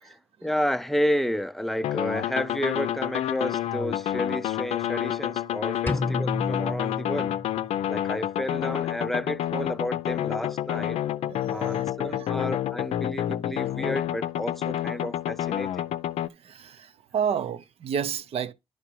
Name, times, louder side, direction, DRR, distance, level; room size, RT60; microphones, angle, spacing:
voice 1, 0.0-7.3 7.9-11.0 11.5-15.8, equal, ahead, 0.5 m, -31 dB
sound 1, 1.8-16.3, left 11 dB, 80° left, 0.5 m, -29 dB
sound 2, 5.9-7.8, left 3 dB, 20° left, 0.9 m, -31 dB
voice 2, 11.2-12.3 16.4-18.5, right 7 dB, 70° right, 0.8 m, -31 dB
11.5 x 5.0 x 3.1 m
cardioid pair, 75°, 11 cm